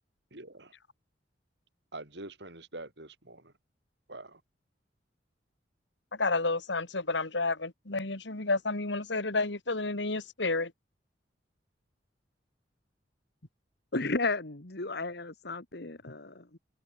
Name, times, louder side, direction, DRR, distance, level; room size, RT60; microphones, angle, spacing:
voice 1, 0.3-0.7 1.9-3.4 4.1-4.4, right 2 dB, 70° right, 7.4 m, -45 dB
voice 2, 6.2-10.7, left 3 dB, 80° left, 2.5 m, -30 dB
voice 3, 13.9-16.6, left 3 dB, 65° left, 2.3 m, -33 dB
head